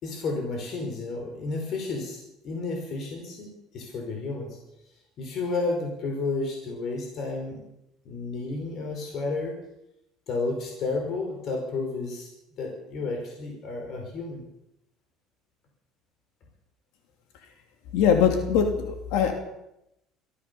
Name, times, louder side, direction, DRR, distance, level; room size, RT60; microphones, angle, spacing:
voice 1, 0.0-4.6 5.2-7.6 8.1-9.6 10.3-12.3 12.6-14.4, left 3 dB, 45° left, 2 dB, 5.3 m, -31 dB
voice 2, 17.9-19.3, left 7 dB, 80° left, 4 dB, 2.9 m, -22 dB
23.5 x 16.0 x 7.1 m, 0.86 s
cardioid pair, 140°, 0 cm